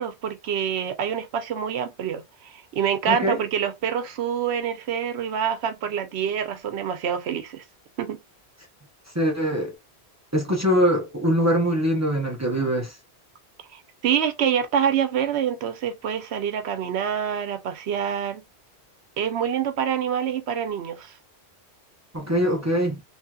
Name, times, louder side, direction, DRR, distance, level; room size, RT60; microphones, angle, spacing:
voice 1, 0.0-7.6 8.0-8.2 13.7-18.4 19.2-21.1, right 8 dB, 80° right, 0.9 m, -26 dB
voice 2, 3.1-3.4 9.1-9.7 10.3-12.9 22.1-23.0, equal, 20° right, 0.6 m, -23 dB
3.0 x 2.8 x 2.2 m
omnidirectional pair, 1.1 m